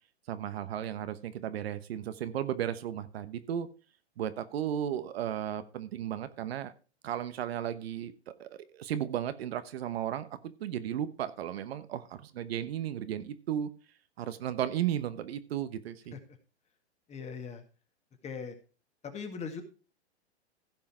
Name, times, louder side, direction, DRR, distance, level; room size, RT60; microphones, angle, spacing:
voice 1, 0.3-3.7 4.2-6.7 7.0-13.7 14.2-16.1, right 10 dB, 65° right, 12 dB, 1.1 m, -35 dB
voice 2, 17.1-17.6 18.2-18.6 19.0-19.6, left 5 dB, 20° left, 7 dB, 1.7 m, -39 dB
15.5 x 5.6 x 4.5 m, 0.35 s
hypercardioid pair, 125°, 34 cm